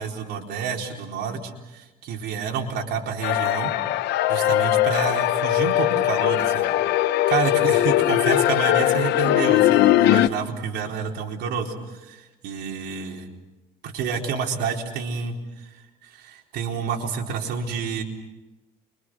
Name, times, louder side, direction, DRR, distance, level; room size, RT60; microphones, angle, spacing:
voice 1, 0.0-3.7 4.3-6.7 7.3-11.7 12.0-13.3 13.8-18.0, right 6 dB, 80° right, 1 dB, 4.2 m, -29 dB
sound 1, 3.2-10.3, left 14 dB, 80° left, 1.0 m, -20 dB
29.5 x 24.5 x 6.3 m, 1.1 s
cardioid pair, 110°, 17 cm